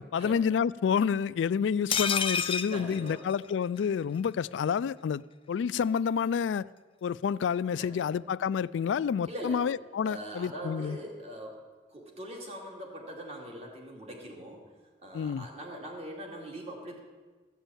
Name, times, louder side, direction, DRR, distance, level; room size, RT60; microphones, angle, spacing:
voice 1, 0.0-5.2 5.5-6.7 7.0-11.0 15.1-15.5, left 7 dB, 90° left, 18 dB, 0.3 m, -29 dB
sound 1, 1.9-3.9 4.2-4.3 4.5-4.7, left 6 dB, 30° left, 0.5 m, -30 dB
voice 2, 2.7-3.2 7.8-8.1 9.3-9.7 10.0-11.6 11.9-14.7 15.0-17.0, equal, 35° right, 0 dB, 2.6 m, -42 dB
15.0 x 7.0 x 8.9 m, 1.4 s
head